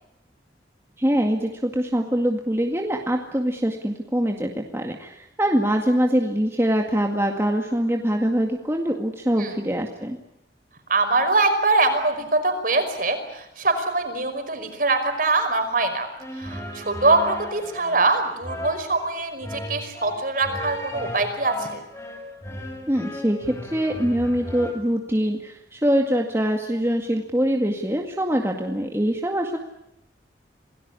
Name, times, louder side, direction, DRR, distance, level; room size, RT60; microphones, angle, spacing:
voice 1, 1.0-10.2 22.9-29.6, equal, 15° right, 2 dB, 2.0 m, -23 dB
voice 2, 10.9-16.1 16.4-21.8, right 3 dB, 50° right, 7 dB, 5.3 m, -23 dB
sound 1, 16.2-24.7, left 1 dB, 15° left, 6.6 m, -36 dB
27.5 x 19.0 x 9.7 m, 0.85 s
head